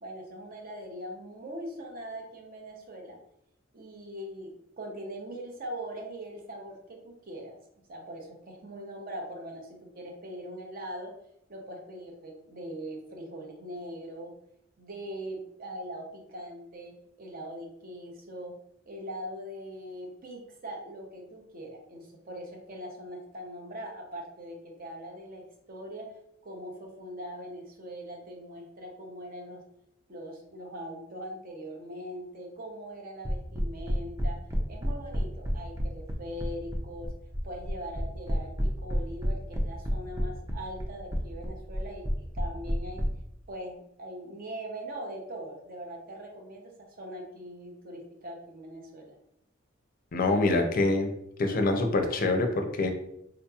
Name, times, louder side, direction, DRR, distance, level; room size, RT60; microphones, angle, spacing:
voice 1, 0.0-3.2 3.7-7.6 7.9-11.1 11.5-14.3 14.8-18.5 18.9-26.1 26.4-29.6 30.1-34.4 34.7-37.1 37.4-43.1 43.5-49.2, equal, 45° right, 1 dB, 0.7 m, -41 dB
sound 1, 33.2-43.1, equal, 15° right, 0.4 m, -30 dB
voice 2, 50.1-51.1 51.4-52.9, left 2 dB, 45° left, 4 dB, 0.5 m, -25 dB
3.7 x 2.8 x 2.3 m, 0.76 s
head